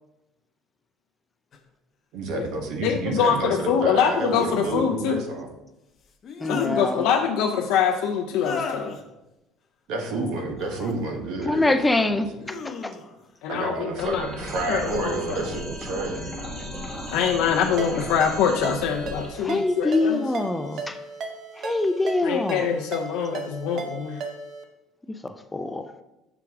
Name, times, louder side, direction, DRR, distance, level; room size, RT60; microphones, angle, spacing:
sound 1, 1.5-1.6 3.9-4.5 6.0-6.8 8.3-9.0 10.5-11.0 11.5-12.0 12.4-13.3 14.5-15.2 15.8-17.8 18.9-19.4 20.0-20.5, left 4 dB, 45° left, 0.7 m, -38 dB
voice 1, 2.1-5.5 9.9-12.5 13.5-16.2, right 2 dB, 75° right, 3 dB, 1.1 m, -30 dB
voice 2, 2.8-5.2 6.5-8.9 13.4-14.3 14.7-15.4 17.1-20.2 22.2-24.2, left 7 dB, 75° left, 2 dB, 0.4 m, -24 dB
voice 3, 6.4-7.0 11.5-12.3 12.8-12.9 19.4-20.9 21.6-22.7 25.5-25.8, left 2 dB, 15° left, 9 dB, 0.4 m, -24 dB
sound 2, 14.0-19.3, equal, 20° right, 1.4 m, -36 dB
Ringtone, 17.8-24.6, right 4 dB, 55° right, 0.8 m, -37 dB
6.0 x 4.6 x 3.5 m, 0.97 s
supercardioid pair, 105°, 0 cm